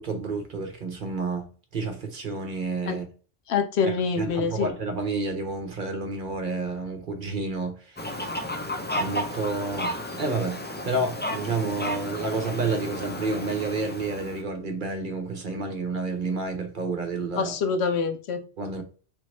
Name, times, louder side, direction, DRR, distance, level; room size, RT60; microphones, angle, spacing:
voice 1, 0.0-1.5 1.7-3.1 3.9-8.2 9.0-10.6 10.8-17.5 18.6-18.8, right 3 dB, 50° right, 0.9 m, -30 dB
voice 2, 3.5-4.7 17.4-18.4, left 5 dB, 80° left, 0.9 m, -25 dB
Fowl, 8.0-14.4, left 1 dB, 15° left, 0.3 m, -33 dB
3.8 x 3.4 x 3.2 m
omnidirectional pair, 1.1 m